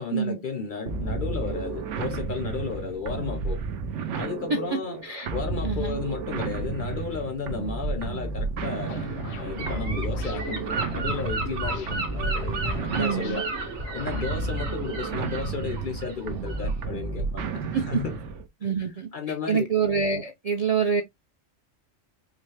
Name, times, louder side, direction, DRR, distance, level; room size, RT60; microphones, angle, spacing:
voice 1, 0.0-3.6 4.2-5.0 5.3-13.5 13.9-18.2 18.8-19.6, left 5 dB, 50° left, 0.6 m, -33 dB
sound 1, 0.9-18.5, right 4 dB, 70° right, 1.0 m, -32 dB
voice 2, 5.6-6.0 12.9-13.4 17.7-18.0 18.6-19.1 19.5-21.0, right 6 dB, 50° right, 0.4 m, -26 dB
sound 2, 8.9-14.3, left 7 dB, 75° left, 0.9 m, -42 dB
Gull seagull / Wind, 9.6-16.9, right 2 dB, 85° right, 1.4 m, -34 dB
4.9 x 2.1 x 3.2 m
omnidirectional pair, 1.3 m